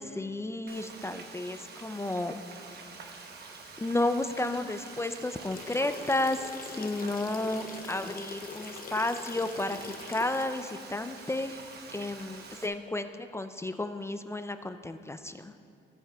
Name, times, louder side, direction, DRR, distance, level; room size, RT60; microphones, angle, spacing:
voice 1, 0.0-2.4 3.8-6.4 6.8-11.6 11.9-15.5, left 2 dB, 15° left, 9 dB, 0.4 m, -32 dB
Frying (food), 0.7-12.7, right 4 dB, 55° right, 1.1 m, -46 dB
sound 1, 5.5-10.5, left 6 dB, 45° left, 0.7 m, -43 dB
16.0 x 8.6 x 2.3 m, 2.5 s
cardioid pair, 90°, 20 cm